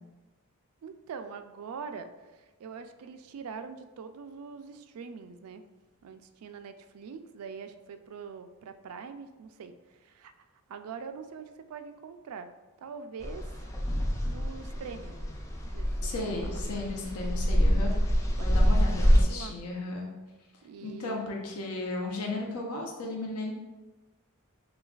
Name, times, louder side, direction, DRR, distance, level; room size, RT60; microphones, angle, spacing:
voice 1, 0.8-5.6 6.0-12.5 12.8-13.7 14.2-15.2 15.6-16.6 18.4-18.5 18.9-19.5 20.6-21.2, right 5 dB, 80° right, 9 dB, 0.3 m, -43 dB
sound 1, 13.2-19.2, equal, 15° left, 0.4 m, -26 dB
voice 2, 16.0-20.1 20.8-23.5, left 2 dB, 90° left, -1 dB, 0.7 m, -35 dB
6.2 x 2.3 x 2.3 m, 1.2 s
head